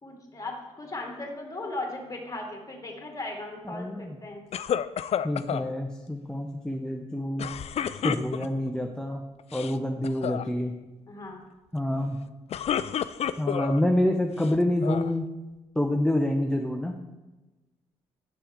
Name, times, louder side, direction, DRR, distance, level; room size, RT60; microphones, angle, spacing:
voice 1, 0.0-4.4 11.1-11.5, left 2 dB, 20° left, 1 dB, 2.0 m, -37 dB
voice 2, 3.7-4.2 5.2-7.5 8.0-9.2 9.5-10.7 11.7-12.2 13.4-15.3 15.8-17.0, left 1 dB, 5° left, 3 dB, 0.7 m, -27 dB
sound 1, 4.5-5.7 7.4-8.7 9.4-9.8 10.0-10.4 12.3-13.8 14.4-15.1, left 9 dB, 45° left, 0.4 m, -30 dB
7.2 x 6.8 x 3.7 m, 1.1 s
hypercardioid pair, 50°, 15 cm